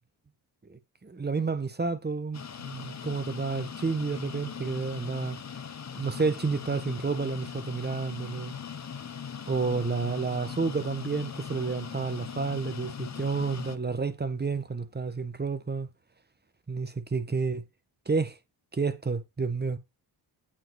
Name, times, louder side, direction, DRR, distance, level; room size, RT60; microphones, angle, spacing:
voice 1, 0.7-5.4 6.0-8.6 9.5-15.9 16.7-17.6 18.1-18.4 18.7-19.8, right 4 dB, 20° right, 1.3 m, -30 dB
sound 1, 2.3-13.8, left 7 dB, 35° left, 1.0 m, -40 dB
8.8 x 5.1 x 4.9 m
cardioid pair, 85°, 45 cm